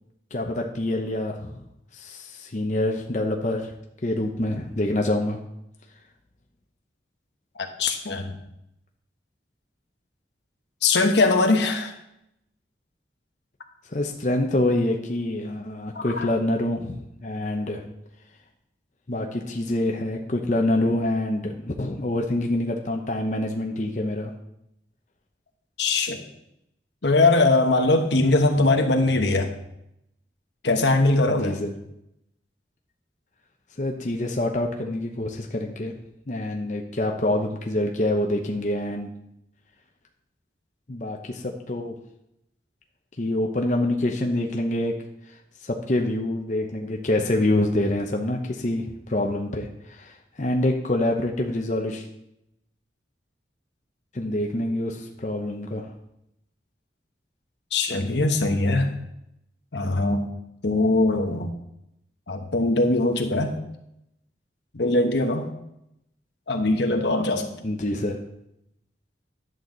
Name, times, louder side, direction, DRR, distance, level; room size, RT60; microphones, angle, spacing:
voice 1, 0.3-1.5 1.9-3.7 4.0-5.4 13.9-17.8 19.1-24.3 31.3-31.7 33.8-35.9 36.3-39.1 40.9-42.0 43.2-44.9 45.3-45.4 45.6-52.1 54.1-55.9 67.6-68.2, left 1 dB, 40° left, 2 dB, 0.8 m, -26 dB
voice 2, 7.6-8.3 10.8-11.9 15.9-16.3 25.8-26.2 27.0-29.5 30.6-31.6 57.7-58.9 59.7-60.3 60.6-61.5 62.3-63.5 64.7-65.5 66.5-67.5, left 2 dB, 80° left, 4 dB, 1.2 m, -21 dB
11.0 x 7.9 x 3.9 m, 0.82 s
head